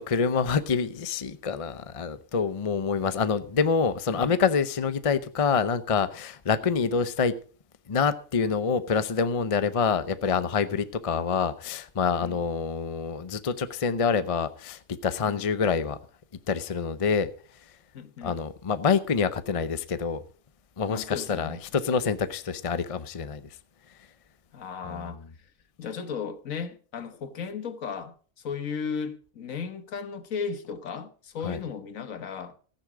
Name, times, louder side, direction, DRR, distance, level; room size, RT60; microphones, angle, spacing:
voice 1, 0.0-7.3 7.9-16.0 16.5-17.3 18.2-20.2 20.8-23.4 24.9-25.1 31.4-31.6, left 5 dB, 35° left, 0.5 m, -26 dB
voice 2, 17.9-18.4 20.9-21.6 24.5-25.5 25.8-32.6, left 6 dB, 65° left, 1.5 m, -35 dB
14.5 x 10.0 x 4.9 m
omnidirectional pair, 1.6 m